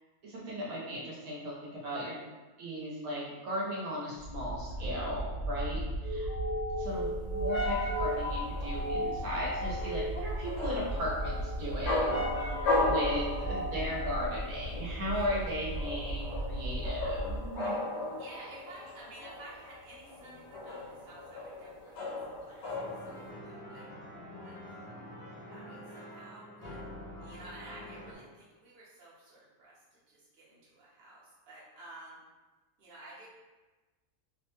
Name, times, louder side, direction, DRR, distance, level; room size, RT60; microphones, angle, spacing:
voice 1, 0.2-2.1 2.6-6.3 6.8-17.7, equal, 80° right, -6 dB, 1.2 m, -37 dB
sound 1, 4.2-17.6, right 1 dB, 55° left, 1.3 m, -35 dB
voice 2, 5.7-6.2 12.6-13.3 15.1-15.6 17.6-23.9 24.4-24.7 25.5-26.8 27.2-32.2 32.8-33.3, right 2 dB, 50° right, -7 dB, 1.0 m, -52 dB
sound 2, 6.9-23.3, left 2 dB, 70° left, 0.9 m, -37 dB
sound 3, 22.7-28.1, left 1 dB, 40° left, 0.6 m, -46 dB
3.1 x 2.1 x 3.0 m, 1.2 s
omnidirectional pair, 1.5 m